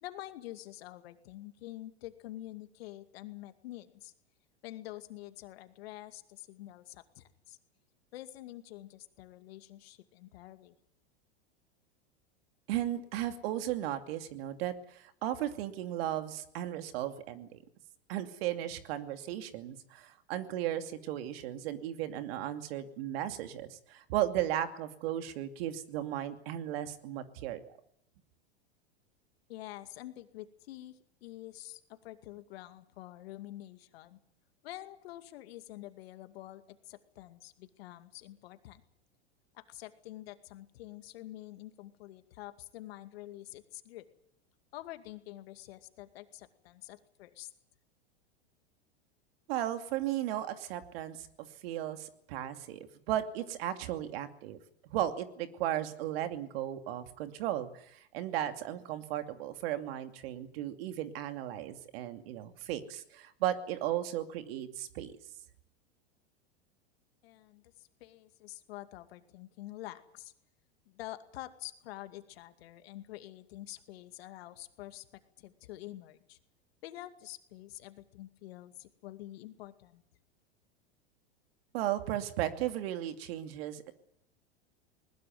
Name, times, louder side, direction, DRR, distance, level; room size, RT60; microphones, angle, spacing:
voice 1, 0.0-4.1 4.6-7.6 8.1-10.8 29.5-34.2 34.6-38.8 39.5-44.0 44.7-47.5 67.2-70.3 70.9-76.4 76.8-80.0, left 15 dB, 70° left, 9 dB, 2.3 m, -47 dB
voice 2, 12.7-17.6 18.1-27.8 49.5-51.3 51.6-54.6 54.8-65.2 81.7-83.9, right 12 dB, 65° right, 8 dB, 2.6 m, -35 dB
20.5 x 20.0 x 9.4 m, 0.72 s
hypercardioid pair, 100°, 32 cm